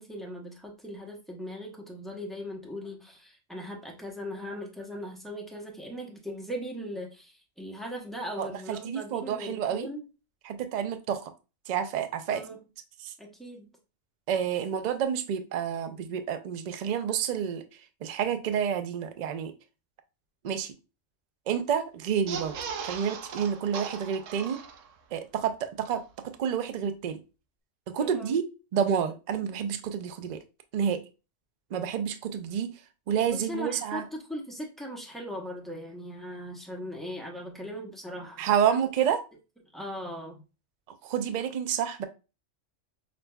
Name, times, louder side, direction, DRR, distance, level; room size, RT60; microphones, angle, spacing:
voice 1, 0.0-10.1 12.3-12.6 13.2-13.7 28.0-28.4 33.3-38.4 39.7-40.4, equal, ahead, 0.7 m, -39 dB
voice 2, 8.4-9.9 10.4-11.3 11.7-12.4 13.0-13.1 14.3-17.6 18.0-19.5 20.4-20.7 21.5-22.5 22.9-24.6 25.1-27.2 27.9-30.4 30.7-31.0 31.7-32.7 33.1-34.0 38.4-39.2 41.0-42.0, right 8 dB, 60° right, 0.4 m, -29 dB
sound 1, 22.1-25.1 25.5-25.6 25.8-25.9, right 6 dB, 80° right, 0.9 m, -38 dB
6.0 x 2.5 x 2.2 m
omnidirectional pair, 1.3 m